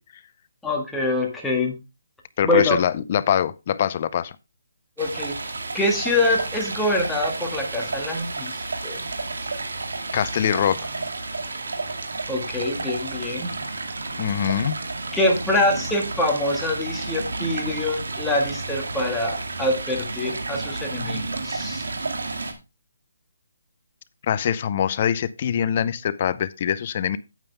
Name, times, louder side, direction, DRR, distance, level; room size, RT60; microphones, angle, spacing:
voice 1, 0.6-1.8 2.4-2.8 5.0-8.5 8.8-9.0 12.3-13.5 15.1-21.8, left 2 dB, 5° left, 1.6 m, -25 dB
voice 2, 2.4-4.3 10.1-10.8 14.2-14.8 24.3-27.2, left 9 dB, 35° left, 0.5 m, -23 dB
Stream, 5.0-22.5, right 3 dB, 80° right, 2.2 m, -31 dB
9.0 x 8.7 x 3.4 m
hypercardioid pair, 165°, 0 cm